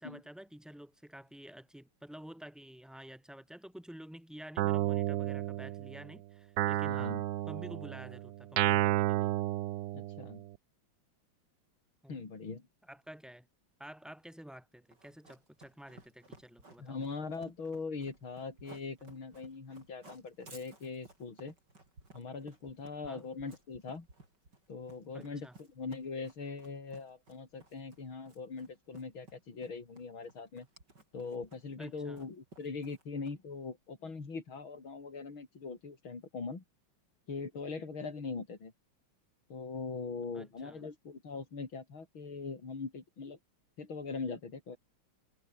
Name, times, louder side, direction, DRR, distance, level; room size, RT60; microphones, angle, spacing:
voice 1, 0.0-7.2 7.5-9.4 12.0-12.3 12.9-13.5 13.8-17.0 23.0-23.3 25.1-25.6 31.8-32.2 40.3-40.8, equal, ahead, 3.6 m, -50 dB
Guitar, 4.6-6.1 6.6-10.5, right 13 dB, 70° right, 0.9 m, -32 dB
voice 2, 6.9-7.2 9.9-10.4 12.1-12.7 16.8-21.5 22.1-24.1 24.7-30.7 31.1-36.6 37.3-38.7 39.5-43.4 43.8-44.8, left 4 dB, 75° left, 4.9 m, -41 dB
Run, 14.9-33.6, right 2 dB, 55° right, 7.7 m, -57 dB
omnidirectional pair, 2.2 m